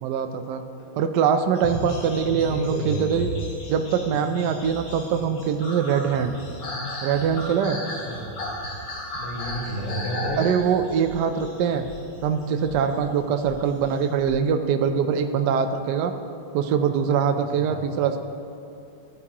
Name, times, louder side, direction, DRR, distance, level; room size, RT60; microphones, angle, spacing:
voice 1, 0.0-0.6 1.0-3.3 3.7-6.3 7.0-7.8 10.4-11.8 12.2-16.1 16.5-18.2, right 7 dB, 80° right, 7 dB, 0.9 m, -23 dB
sound 1, 1.5-12.9 13.6-14.0, left 1 dB, 85° left, 2.8 m, -35 dB
voice 2, 2.3-3.0 8.0-8.3 9.2-10.5 17.5-17.7, equal, 30° left, -3 dB, 1.5 m, -31 dB
sound 2, 9.4-9.9 10.3-10.7 11.1-11.5 11.9-12.3 12.7-13.1 13.5-13.9 14.3-14.4, left 5 dB, 65° left, 1.0 m, -43 dB
13.5 x 8.3 x 2.9 m, 2.8 s
omnidirectional pair, 2.4 m